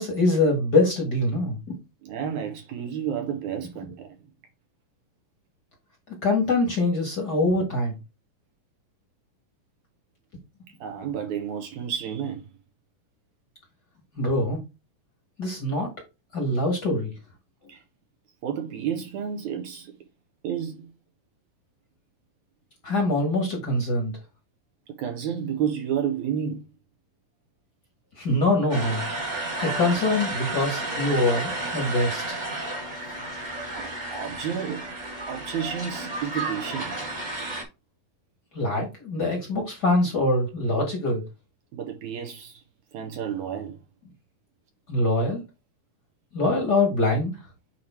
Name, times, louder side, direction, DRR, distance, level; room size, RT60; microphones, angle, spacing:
voice 1, 0.0-1.8 6.1-7.9 14.1-14.6 15.4-15.9 16.3-17.1 22.8-24.1 28.2-29.0 29.6-32.4 38.5-41.2 44.9-45.4 46.3-47.4, left 2 dB, 40° left, 1.6 m, -24 dB
voice 2, 2.0-4.2 10.8-12.4 17.7-17.8 18.4-19.9 20.4-20.9 24.9-26.6 33.8-34.9 35.3-37.1 41.7-42.6 42.9-43.8, right 8 dB, 70° right, 1.9 m, -31 dB
sound 1, 28.7-37.6, right 2 dB, 25° right, 1.0 m, -32 dB
8.8 x 3.0 x 4.3 m
omnidirectional pair, 4.1 m